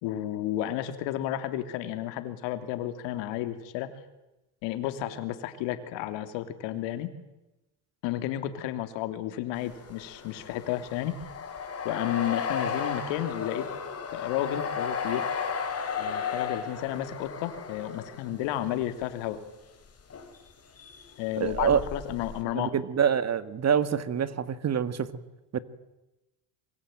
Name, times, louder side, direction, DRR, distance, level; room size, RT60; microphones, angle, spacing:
voice 1, 0.0-3.9 4.6-7.1 8.0-11.2 11.8-13.7 14.1-15.2 16.0-19.4 21.2-22.8, left 12 dB, 75° left, 10 dB, 3.1 m, -32 dB
sound 1, 9.6-19.0 20.0-20.5 20.8-22.4, left 6 dB, 30° left, 4.6 m, -34 dB
voice 2, 21.4-21.8 22.5-25.2 25.5-25.6, right 8 dB, 35° right, 14 dB, 1.8 m, -26 dB
27.0 x 23.0 x 9.1 m, 0.98 s
supercardioid pair, 105°, 45 cm